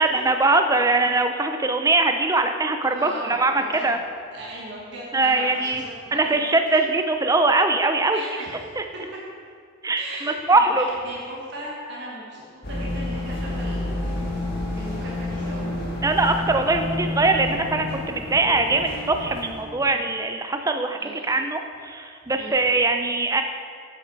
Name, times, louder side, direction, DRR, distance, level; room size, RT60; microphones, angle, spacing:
voice 1, 0.0-4.0 5.1-5.8 6.1-8.2 8.8-8.9 9.8-10.8 16.0-23.4, right 3 dB, 15° right, 6 dB, 0.4 m, -22 dB
voice 2, 2.9-4.0 4.3-6.6 8.1-8.5 8.9-9.2 9.9-14.3 14.8-15.7 21.0-21.4 22.4-22.7, right 1 dB, 55° right, -5 dB, 1.4 m, -38 dB
sound 1, 12.6-19.6, left 1 dB, 45° left, 1.7 m, -29 dB
8.1 x 7.1 x 4.7 m, 2.2 s
head